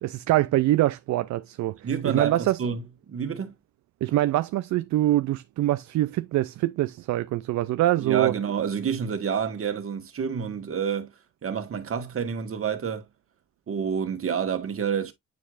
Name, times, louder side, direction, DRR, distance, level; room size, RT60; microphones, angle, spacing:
voice 1, 0.0-1.8 2.0-2.6 4.0-8.3, right 15 dB, 65° right, 0.5 m, -24 dB
voice 2, 1.8-3.5 8.0-11.1 11.4-13.0 13.7-15.1, right 7 dB, 45° right, 1.7 m, -28 dB
9.3 x 4.6 x 2.5 m
cardioid pair, 90°, 30 cm